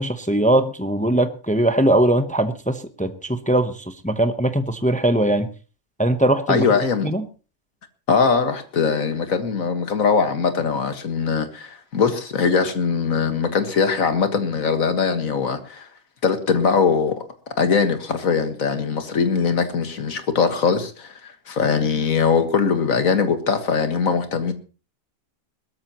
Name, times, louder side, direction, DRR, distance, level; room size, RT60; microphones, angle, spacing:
voice 1, 0.0-5.5 6.0-6.6 7.0-7.2, right 1 dB, 10° left, 0.6 m, -20 dB
voice 2, 6.5-7.1 8.1-15.9 16.2-17.2 17.6-24.5, left 5 dB, 60° left, 2.0 m, -21 dB
21.0 x 13.5 x 3.0 m
omnidirectional pair, 1.6 m